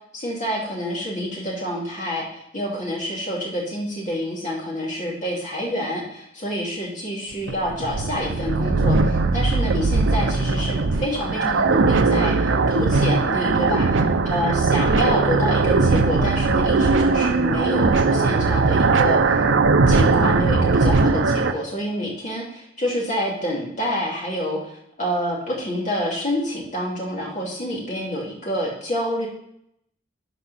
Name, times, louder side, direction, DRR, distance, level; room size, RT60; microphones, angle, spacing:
voice 1, 0.1-19.5 19.9-29.3, equal, 40° left, -3 dB, 2.8 m, -27 dB
sound 1, 7.3-21.5, right 3 dB, 80° right, 0.6 m, -19 dB
11.5 x 5.2 x 4.2 m, 0.74 s
head